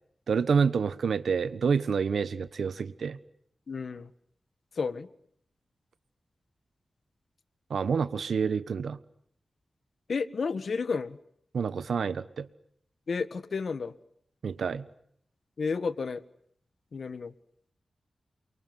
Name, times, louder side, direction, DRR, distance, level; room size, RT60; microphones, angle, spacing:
voice 1, 0.3-3.2 7.7-9.0 11.5-12.5 14.4-14.8, right 6 dB, 90° right, 1.3 m, -28 dB
voice 2, 3.7-4.1 4.8-5.1 10.1-11.2 13.1-13.9 15.6-16.2 16.9-17.3, left 5 dB, 70° left, 1.7 m, -31 dB
29.0 x 24.0 x 7.8 m
wide cardioid pair, 90°, 0 cm